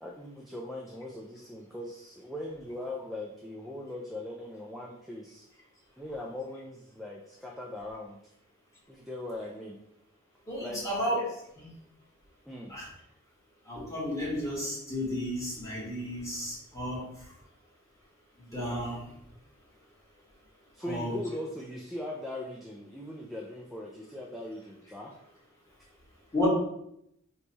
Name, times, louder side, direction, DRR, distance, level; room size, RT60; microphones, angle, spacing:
voice 1, 0.0-5.4 6.0-8.2 8.9-9.8 10.6-10.8 12.5-12.7 20.7-25.1, left 1 dB, ahead, -2 dB, 0.3 m, -40 dB
voice 2, 10.5-11.2 11.6-11.7 12.7-12.8 13.7-17.0 18.5-19.0 20.8-21.1 26.3-26.5, equal, 15° left, -7 dB, 1.4 m, -32 dB
3.1 x 2.2 x 3.9 m, 0.76 s
head